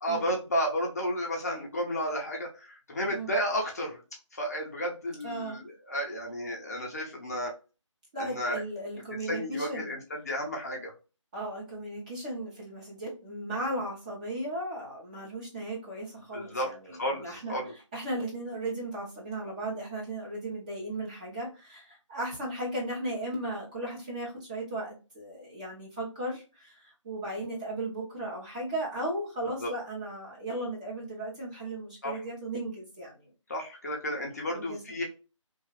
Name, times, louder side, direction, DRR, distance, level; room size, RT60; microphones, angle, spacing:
voice 1, 0.0-4.0 4.3-7.5 8.2-8.6 9.2-10.9 16.3-17.7 29.6-29.7 32.0-32.2 33.5-35.0, equal, 30° left, -1 dB, 0.6 m, -32 dB
voice 2, 5.2-5.6 8.1-9.9 11.3-17.6 17.9-33.3 34.5-34.8, right 1 dB, 15° right, -4 dB, 0.7 m, -36 dB
2.8 x 2.3 x 3.1 m, 0.31 s
figure-of-eight pair, 160°, 16 cm